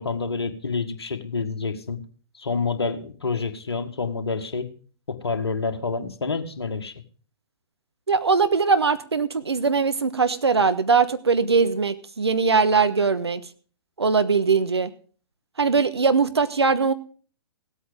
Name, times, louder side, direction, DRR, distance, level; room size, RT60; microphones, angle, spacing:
voice 1, 0.0-2.0 2.4-4.7 5.1-6.9, left 4 dB, 70° left, 6 dB, 1.8 m, -28 dB
voice 2, 8.1-13.4 14.0-14.9 15.6-16.9, right 5 dB, 75° right, 11 dB, 1.2 m, -21 dB
16.5 x 8.4 x 5.2 m, 0.42 s
figure-of-eight pair, 120°, 14 cm